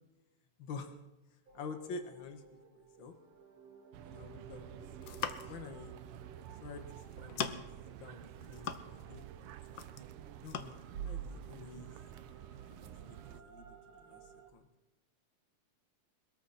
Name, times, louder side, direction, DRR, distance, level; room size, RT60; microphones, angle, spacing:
voice 1, 0.6-1.0 1.5-2.4 2.7-3.1 4.1-4.8 5.5-5.9 6.6-7.6 8.0-9.5 10.4-11.9 12.8-14.2 14.5-14.7, left 4 dB, 45° left, 7 dB, 2.0 m, -48 dB
sound 1, 1.5-14.5, right 7 dB, 60° right, 2.9 m, -52 dB
sound 2, 3.9-13.4, right 11 dB, 80° right, 1.2 m, -50 dB
sound 3, 4.9-5.7 6.7-6.8 7.1-7.8 8.2-9.2 9.4-10.1 10.5-10.7, left 8 dB, 75° left, 1.1 m, -40 dB
22.0 x 13.5 x 4.3 m, 1.0 s
omnidirectional pair, 3.3 m